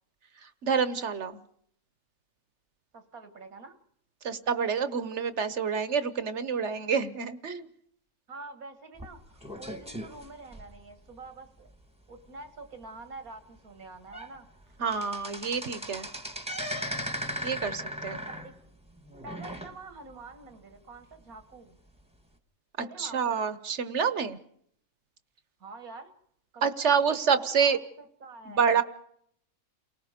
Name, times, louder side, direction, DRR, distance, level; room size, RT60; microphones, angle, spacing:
voice 1, 0.4-1.4 4.2-7.7 14.8-16.1 17.4-18.2 23.0-24.4 26.6-27.8 28.5-28.8, right 6 dB, 55° right, 13 dB, 1.3 m, -27 dB
voice 2, 2.9-3.8 8.3-11.7 12.1-14.5 17.6-18.5 19.2-21.8 22.8-23.4 25.6-26.1 26.5-27.8 28.2-28.7, right 3 dB, 90° right, 9 dB, 2.3 m, -46 dB
sound 1, 9.0-11.2 11.7-11.8 12.2-12.3 12.8-12.9 13.6-13.7 14.0-14.3 14.6-20.1 20.5-20.6 21.4-21.5, equal, 5° right, 1.3 m, -38 dB
29.5 x 19.0 x 5.2 m, 0.68 s
omnidirectional pair, 1.5 m